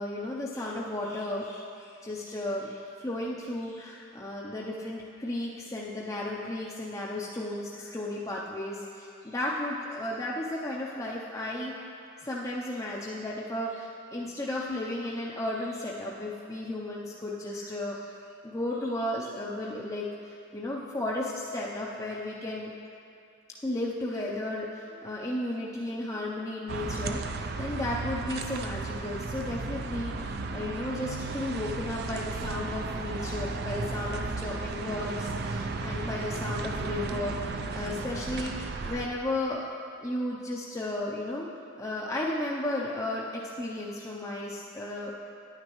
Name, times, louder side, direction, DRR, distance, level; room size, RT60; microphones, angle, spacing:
voice 1, 0.0-11.8 12.2-18.2 18.4-22.7 23.6-39.7 40.0-41.5 41.8-45.1, left 1 dB, 15° left, -5 dB, 0.5 m, -34 dB
sound 1, 26.7-39.1, right 3 dB, 50° right, 0.4 m, -34 dB
10.5 x 9.4 x 3.0 m, 2.5 s
head